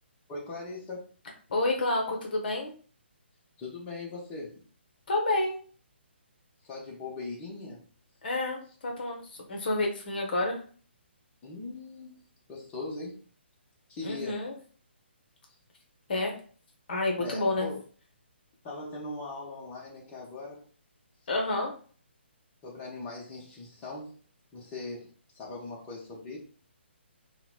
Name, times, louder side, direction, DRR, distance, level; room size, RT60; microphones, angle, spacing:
voice 1, 0.3-1.1 3.6-4.6 6.6-7.8 11.4-12.2 12.5-13.2 13.9-14.5 17.2-17.8 18.6-20.7 22.6-24.1 24.5-26.4, left 3 dB, 20° left, -4 dB, 0.7 m, -40 dB
voice 2, 1.5-2.7 5.1-5.6 8.2-9.2 9.5-10.6 14.0-14.5 16.1-16.3 16.9-17.7 21.3-21.7, left 2 dB, 50° left, 0 dB, 0.8 m, -29 dB
2.9 x 2.1 x 2.4 m, 0.42 s
figure-of-eight pair, 135°, 6 cm